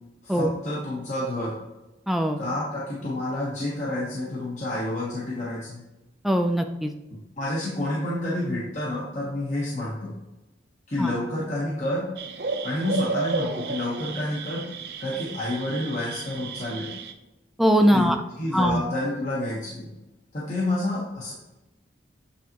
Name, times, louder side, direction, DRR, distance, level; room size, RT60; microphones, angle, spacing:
voice 1, 0.2-1.6 2.4-5.8 7.1-10.2 10.9-12.1 12.6-14.7 15.0-16.9 17.9-19.9 20.3-21.3, left 1 dB, 40° left, -6 dB, 1.2 m, -29 dB
voice 2, 2.1-2.4 6.2-6.9 11.0-11.1 17.6-18.2 18.5-18.8, equal, ahead, 5 dB, 0.5 m, -21 dB
sound 1, 12.2-17.1, right 4 dB, 60° right, 0.6 m, -32 dB
8.4 x 4.0 x 3.0 m, 1.0 s
head